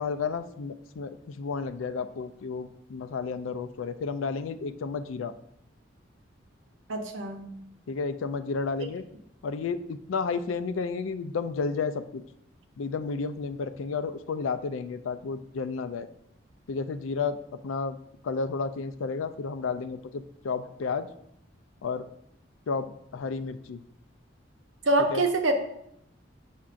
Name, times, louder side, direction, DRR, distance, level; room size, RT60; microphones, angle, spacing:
voice 1, 0.0-5.3 7.9-9.0 9.4-12.2 12.8-16.1 16.7-17.4 17.6-18.0 18.2-21.1 21.8-22.0 22.7-23.8 25.1-25.2, left 4 dB, 90° left, 11 dB, 0.4 m, -32 dB
voice 2, 6.9-7.5 24.8-25.5, right 2 dB, 80° right, 5 dB, 0.8 m, -25 dB
7.3 x 5.7 x 2.5 m, 0.75 s
head